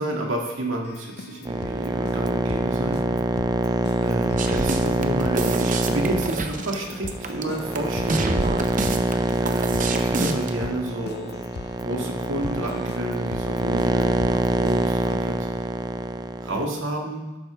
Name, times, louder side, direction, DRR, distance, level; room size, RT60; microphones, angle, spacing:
voice 1, 0.0-3.0 4.0-8.5 9.4-11.4 11.8-15.4 16.4-17.2, right 1 dB, 75° right, 0 dB, 1.9 m, -30 dB
Keyboard (musical), 0.8-15.2, left 3 dB, 50° left, 0.5 m, -40 dB
sound 1, 1.4-16.6, right 2 dB, 20° right, 0.3 m, -25 dB
sound 2, 4.4-10.5, right 3 dB, 40° right, 0.8 m, -27 dB
12.0 x 8.8 x 3.4 m, 1.1 s
head